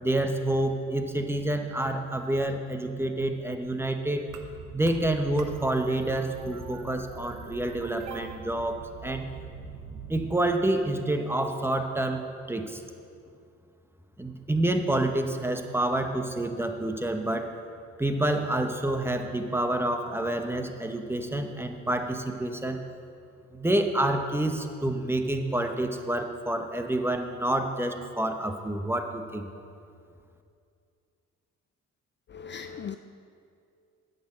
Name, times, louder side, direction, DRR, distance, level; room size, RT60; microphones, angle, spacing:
voice 1, 0.0-4.3 4.7-9.3 10.1-12.8 14.2-17.5 18.0-22.8 23.5-29.5, right 1 dB, 10° right, 5 dB, 0.9 m, -28 dB
sound 1, 4.3-10.3, right 6 dB, 75° right, 1.0 m, -43 dB
voice 2, 32.3-33.0, left 7 dB, 40° left, 9 dB, 0.4 m, -38 dB
9.3 x 6.7 x 7.3 m, 2.4 s
cardioid pair, 90°, 30 cm